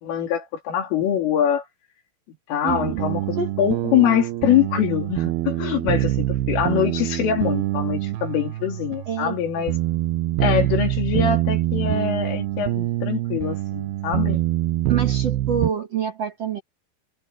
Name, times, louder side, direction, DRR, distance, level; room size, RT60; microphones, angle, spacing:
voice 1, 0.0-1.6 2.5-9.8 10.4-14.4, left 9 dB, 90° left, 6.2 m, -23 dB
voice 2, 2.6-3.0 3.4-3.5 9.1-9.4 14.9-16.6, right 7 dB, 45° right, 2.2 m, -26 dB
sound 1, 2.7-15.7, right 15 dB, 75° right, 2.4 m, -25 dB
omnidirectional pair, 5.6 m